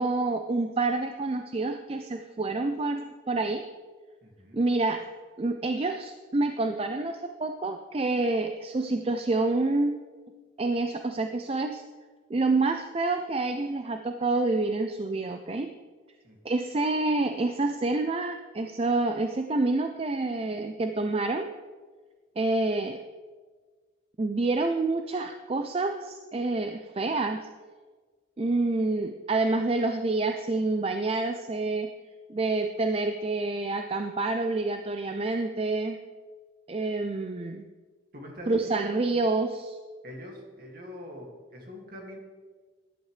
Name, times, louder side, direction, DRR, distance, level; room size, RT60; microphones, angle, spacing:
voice 1, 0.0-3.7 4.5-5.0 5.4-10.0 10.6-11.8 12.3-15.7 16.4-21.5 22.4-23.0 24.2-27.5 28.4-31.9 32.3-36.0 36.7-37.7 38.5-39.8, right 3 dB, 30° right, 6 dB, 0.4 m, -28 dB
voice 2, 4.2-4.6 16.2-16.4 38.1-39.2 40.0-42.2, equal, 50° right, 0 dB, 2.3 m, -43 dB
14.5 x 11.0 x 3.3 m, 1.4 s
head